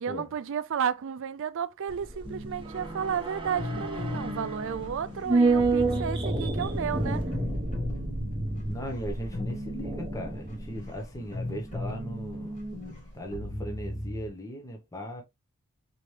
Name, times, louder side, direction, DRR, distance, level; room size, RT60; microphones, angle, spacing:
voice 1, 0.0-7.2, right 7 dB, 65° right, 0.4 m, -32 dB
sound 1, 1.9-12.3 12.6-12.7, right 3 dB, 25° right, 1.1 m, -30 dB
sound 2, 2.2-14.3, left 1 dB, 35° left, 2.3 m, -37 dB
voice 2, 8.6-12.6 13.1-15.2, equal, 15° left, 0.9 m, -38 dB
4.2 x 3.0 x 3.2 m
head